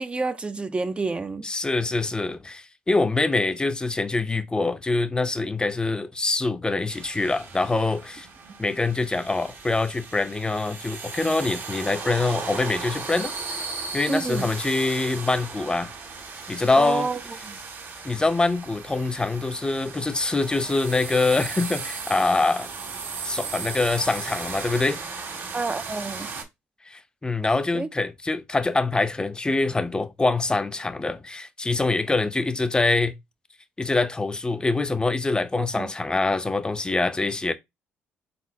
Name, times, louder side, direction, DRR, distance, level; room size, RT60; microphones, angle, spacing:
voice 1, 0.0-1.5 14.1-14.5 16.8-17.2 17.5-17.6 25.5-26.3 27.7-27.9 35.5-35.9, right 3 dB, 25° right, 0.5 m, -28 dB
voice 2, 1.4-8.3 8.6-13.3 13.9-15.9 16.5-17.1 18.0-22.7 23.2-25.0 26.9-33.2 33.8-37.5, left 3 dB, 20° left, 0.7 m, -24 dB
sound 1, 6.9-26.4, right 4 dB, 55° right, 1.7 m, -36 dB
4.2 x 3.7 x 2.7 m
supercardioid pair, 65°, 5 cm